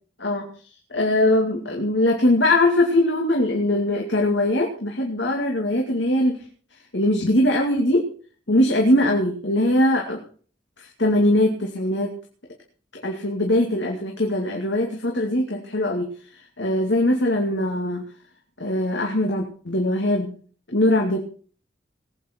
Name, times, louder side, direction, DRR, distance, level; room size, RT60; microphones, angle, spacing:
voice 1, 0.9-6.4 6.9-8.1 8.5-10.2 10.8-12.1 13.0-16.1 16.6-18.0 18.6-20.3 20.7-21.2, left 1 dB, 90° left, 1 dB, 2.4 m, -21 dB
20.0 x 8.8 x 4.5 m, 0.43 s
head